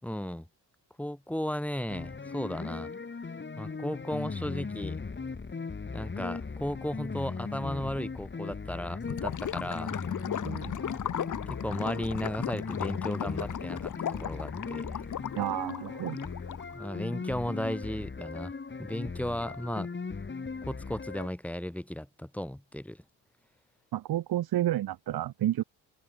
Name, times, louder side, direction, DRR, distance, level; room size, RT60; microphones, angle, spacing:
voice 1, 0.0-0.5 1.0-2.9 3.6-5.0 5.9-10.0 11.5-15.0 16.7-18.5 18.8-19.9 20.7-23.0, left 1 dB, 5° left, 7.2 m, -35 dB
sound 1, 1.9-21.3, left 4 dB, 25° left, 5.3 m, -38 dB
Gurgling / Liquid, 9.0-16.7, left 9 dB, 50° left, 1.6 m, -36 dB
voice 2, 10.5-10.8 15.3-16.2 23.9-25.6, right 13 dB, 60° right, 1.7 m, -30 dB
open air
cardioid pair, 85°, 40 cm